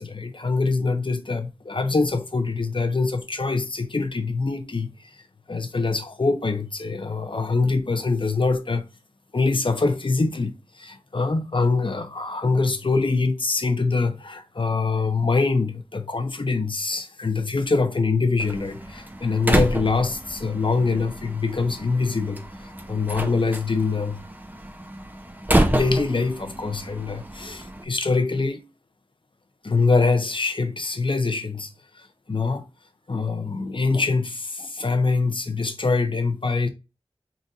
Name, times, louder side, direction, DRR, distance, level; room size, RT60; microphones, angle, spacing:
voice 1, 0.0-4.9 5.5-8.8 9.3-10.5 10.8-22.4 22.9-24.2 25.6-28.6 29.6-31.7 32.3-32.6 33.1-36.7, left 3 dB, 55° left, 0.8 m, -24 dB
Slam, 18.4-27.8, right 1 dB, 15° right, 0.7 m, -28 dB
3.9 x 2.5 x 4.0 m
wide cardioid pair, 45°, 10 cm